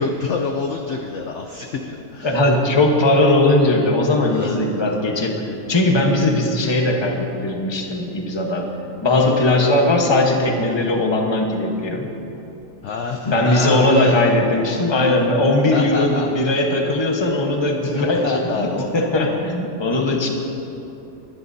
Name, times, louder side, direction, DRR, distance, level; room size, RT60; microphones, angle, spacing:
voice 1, 0.0-2.4 4.3-4.7 9.3-9.4 12.8-14.2 15.7-16.3 17.9-19.1, left 4 dB, 60° left, 3 dB, 0.8 m, -27 dB
voice 2, 2.2-8.6 9.0-12.1 13.2-18.7 18.9-20.3, left 2 dB, 20° left, 1 dB, 0.9 m, -19 dB
22.0 x 11.5 x 2.8 m, 2.9 s
omnidirectional pair, 1.9 m